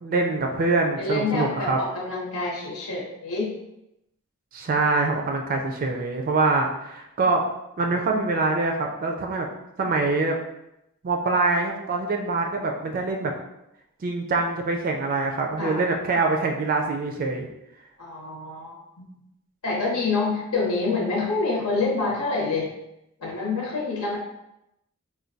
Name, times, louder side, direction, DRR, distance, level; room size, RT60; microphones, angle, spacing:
voice 1, 0.0-1.8 4.5-7.4 7.8-9.5 9.8-10.4 11.0-13.3 14.0-17.5, right 3 dB, 40° right, 3 dB, 0.4 m, -24 dB
voice 2, 1.0-3.5 15.6-15.8 18.0-18.8 19.6-22.7 23.2-24.2, left 3 dB, 85° left, -3 dB, 0.9 m, -27 dB
4.3 x 2.2 x 2.6 m, 0.85 s
head